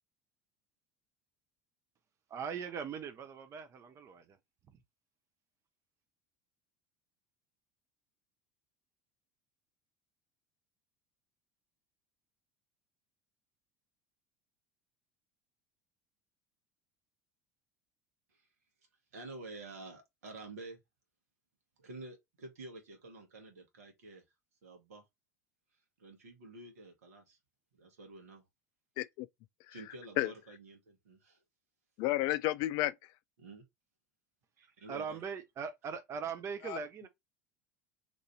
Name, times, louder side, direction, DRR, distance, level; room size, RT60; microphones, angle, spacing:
voice 1, 2.3-4.4 34.6-37.1, right 6 dB, 35° right, 0.6 m, -41 dB
voice 2, 19.1-20.8 21.8-24.2 24.6-25.0 26.0-27.4 27.7-28.4 29.7-31.4 33.4-33.6 34.6-35.2, right 2 dB, 70° right, 1.4 m, -49 dB
voice 3, 29.0-29.3 30.2-30.3 32.0-32.9 36.7-36.8, left 16 dB, 50° left, 0.3 m, -31 dB
3.0 x 2.6 x 4.0 m
figure-of-eight pair, 70°, 9 cm